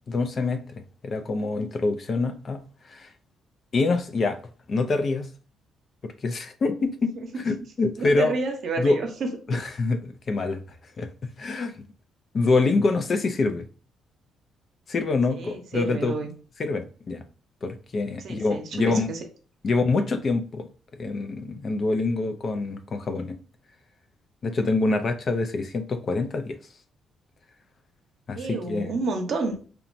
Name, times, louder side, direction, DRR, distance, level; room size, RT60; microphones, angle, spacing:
voice 1, 0.0-2.6 2.9-3.1 3.7-4.4 4.7-5.3 6.0-7.1 7.4-8.3 8.8-9.0 9.5-10.0 10.3-10.6 11.0-11.7 12.3-13.7 14.9-16.2 16.6-17.2 17.6-19.1 19.6-20.7 21.0-23.4 24.4-26.6 28.3-28.9, left 3 dB, 45° left, 0.4 m, -25 dB
voice 2, 8.0-9.3 15.3-16.3 18.2-19.2 28.3-29.6, right 3 dB, 60° right, 0.7 m, -30 dB
2.9 x 2.2 x 2.5 m
cardioid pair, 90°, 0 cm